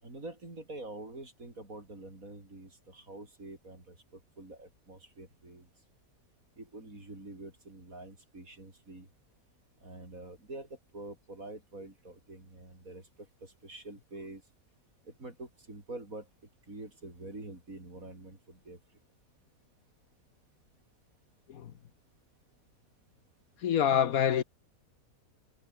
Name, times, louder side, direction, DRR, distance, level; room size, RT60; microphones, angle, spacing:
voice 1, 0.0-5.7 6.6-9.1 9.8-13.1 13.4-14.4 15.0-16.3 16.7-18.8, right 2 dB, 60° right, 6.4 m, -46 dB
voice 2, 23.6-24.4, left 9 dB, 65° left, 1.3 m, -26 dB
omnidirectional pair, 1.7 m